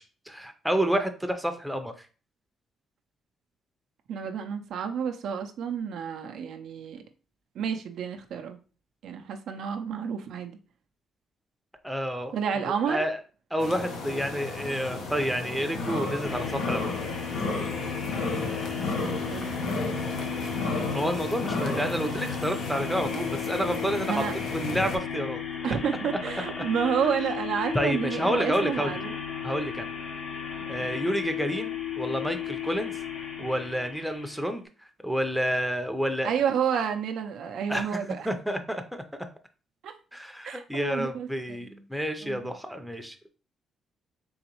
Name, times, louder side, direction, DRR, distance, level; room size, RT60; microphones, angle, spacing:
voice 1, 0.0-2.1 11.8-12.3 12.6-13.2 13.5-17.0 20.9-24.2 24.5-25.7 27.7-28.9 29.4-29.9 30.7-33.0 33.4-34.6 35.0-36.3 37.7-38.0 38.2-39.0 40.1-43.3, equal, ahead, 5 dB, 0.6 m, -29 dB
voice 2, 4.1-7.0 7.5-8.6 9.0-10.6 12.3-13.0 18.9-20.0 24.1-24.3 25.6-29.1 30.6-30.9 36.2-38.3 39.8-39.9 40.4-41.8 42.2-42.5, right 7 dB, 75° right, 5 dB, 0.5 m, -30 dB
sound 1, 13.6-25.0, left 3 dB, 80° left, 0.8 m, -33 dB
sound 2, 16.2-34.5, left 7 dB, 50° left, 0.9 m, -35 dB
3.9 x 3.1 x 2.9 m, 0.36 s
cardioid pair, 90°, 0 cm